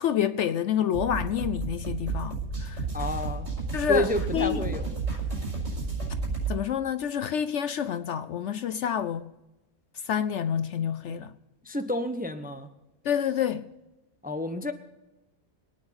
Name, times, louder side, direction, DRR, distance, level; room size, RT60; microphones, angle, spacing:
voice 1, 0.0-2.8 3.7-4.7 6.5-9.3 10.0-11.3 13.0-13.7, left 9 dB, 65° left, 0.8 m, -28 dB
sound 1, 0.9-6.5, right 4 dB, 60° right, 5.3 m, -32 dB
voice 2, 2.9-3.5 3.9-4.9 11.6-12.7 14.2-14.7, equal, 10° right, 0.6 m, -30 dB
22.5 x 9.5 x 4.2 m
omnidirectional pair, 1.5 m